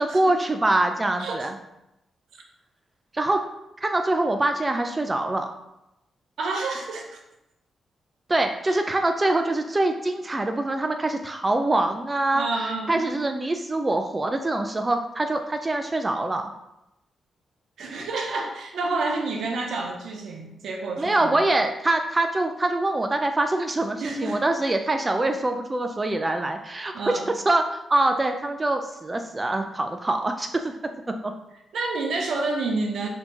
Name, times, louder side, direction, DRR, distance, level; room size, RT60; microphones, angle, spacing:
voice 1, 0.0-1.5 3.1-3.4 3.8-5.5 8.3-16.5 21.0-30.7 31.1-31.3, right 2 dB, 30° right, 5 dB, 0.3 m, -24 dB
voice 2, 6.4-7.2 8.7-8.8 12.3-13.2 17.8-21.4 24.0-24.4 26.9-27.3 31.7-33.1, right 3 dB, 75° right, 2 dB, 0.6 m, -29 dB
4.2 x 2.8 x 2.9 m, 0.89 s
supercardioid pair, 50°, 0 cm